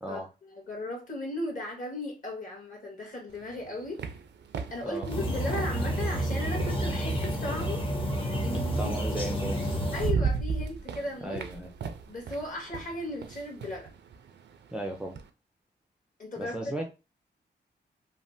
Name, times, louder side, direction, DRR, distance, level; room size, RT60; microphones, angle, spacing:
voice 1, 0.1-4.0 4.7-7.9 8.4-9.2 9.9-11.5 12.1-13.9 16.2-16.6, left 2 dB, 45° left, 1.5 m, -36 dB
sound 1, 3.3-7.9 9.1-9.2 9.6-15.3, right 5 dB, 65° right, 0.4 m, -36 dB
sound 2, 5.1-10.1, equal, 25° left, 0.8 m, -30 dB
voice 2, 8.8-9.8 11.2-11.7 14.7-15.1 16.4-16.9, right 1 dB, 5° right, 0.4 m, -36 dB
3.2 x 2.1 x 2.6 m
cardioid pair, 90°, 19 cm